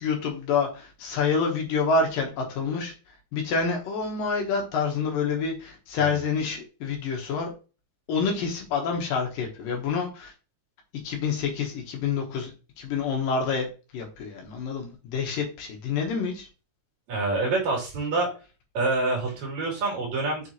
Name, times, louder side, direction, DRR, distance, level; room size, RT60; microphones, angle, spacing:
voice 1, 0.0-2.9 3.3-7.5 8.1-10.3 11.0-12.5 12.8-13.7 13.9-16.5, left 5 dB, 65° left, 2 dB, 2.4 m, -27 dB
voice 2, 17.1-18.3 18.7-20.5, right 3 dB, 40° right, -1 dB, 4.0 m, -26 dB
6.9 x 6.8 x 3.0 m, 0.33 s
omnidirectional pair, 5.3 m